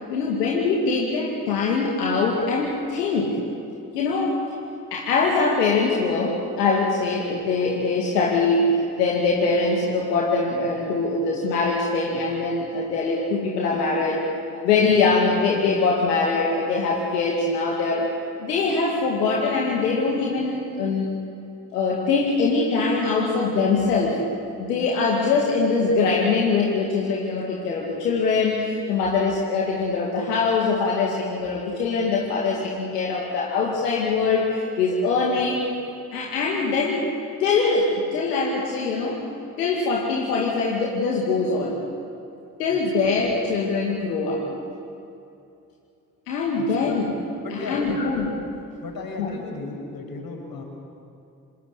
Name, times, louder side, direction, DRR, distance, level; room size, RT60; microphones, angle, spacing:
voice 1, 0.1-3.4 3.9-4.4 4.9-14.2 14.5-18.1 18.4-21.2 21.7-24.2 24.6-35.7 36.1-37.1 37.4-39.2 39.6-41.8 42.6-44.4 46.3-47.1 47.5-48.3 49.2-49.3, left 4 dB, 80° left, -2 dB, 2.4 m, -23 dB
voice 2, 42.7-43.1 46.6-46.9 47.4-48.0 48.8-50.6, left 3 dB, 45° left, 2 dB, 6.8 m, -35 dB
26.0 x 17.5 x 9.9 m, 2.6 s
figure-of-eight pair, 40°, 47 cm